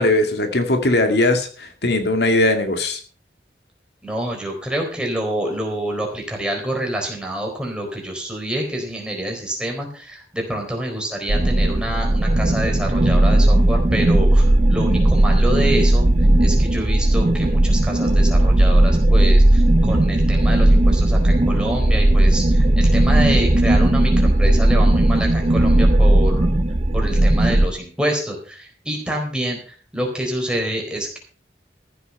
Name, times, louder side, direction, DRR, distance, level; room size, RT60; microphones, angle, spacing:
voice 1, 0.0-3.0, left 2 dB, 70° left, 6 dB, 2.1 m, -19 dB
voice 2, 4.0-16.1 16.4-26.5 26.9-31.2, right 1 dB, 5° right, 0 dB, 4.2 m, -27 dB
sound 1, 11.3-27.7, right 1 dB, 35° right, 0.7 m, -16 dB
14.5 x 8.5 x 5.4 m, 0.41 s
head